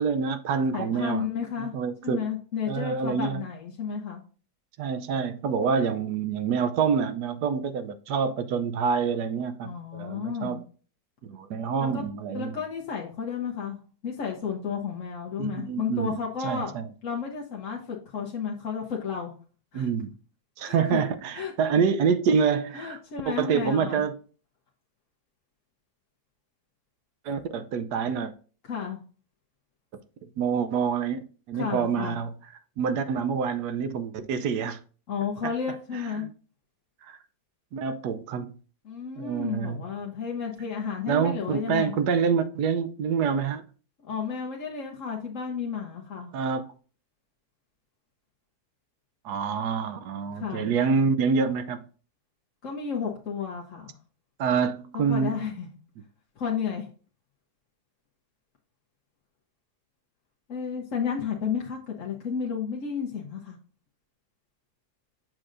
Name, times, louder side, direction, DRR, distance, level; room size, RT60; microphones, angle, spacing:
voice 1, 0.0-1.2 1.6-2.2 2.7-3.4 4.8-10.6 11.2-12.5 15.4-16.2 16.4-16.8 19.7-20.1 20.6-23.0 23.3-24.2 27.2-28.3 30.4-32.3 32.8-34.8 35.4-35.5 36.2-36.3 37.0-37.2 37.7-38.5 39.2-39.8 41.1-43.6 46.3-46.7 49.2-51.8 54.4-55.3, right 6 dB, 80° right, 1.2 m, -27 dB
voice 2, 0.7-1.7 2.0-4.2 9.6-10.6 11.8-12.0 12.3-16.8 17.0-19.3 19.7-19.9 20.6-21.0 21.3-21.5 22.7-24.0 28.7-29.0 31.5-32.2 35.1-36.3 38.8-41.9 44.0-46.3 50.3-50.7 52.6-54.0 55.1-55.7 56.4-56.9 60.5-63.6, left 6 dB, 55° left, 1.2 m, -32 dB
7.5 x 6.2 x 2.5 m
omnidirectional pair, 1.8 m